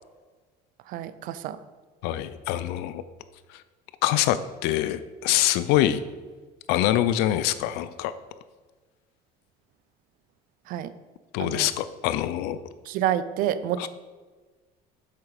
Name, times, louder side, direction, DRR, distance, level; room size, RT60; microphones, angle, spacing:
voice 1, 0.9-1.6 10.7-10.9 11.4-11.7 12.8-13.9, right 11 dB, 55° right, 14 dB, 0.5 m, -28 dB
voice 2, 2.0-3.0 4.0-6.0 6.7-8.1 11.3-12.6 13.8-13.9, left 13 dB, 80° left, 14 dB, 0.5 m, -24 dB
7.7 x 7.3 x 4.9 m, 1.4 s
cardioid pair, 165°, 17 cm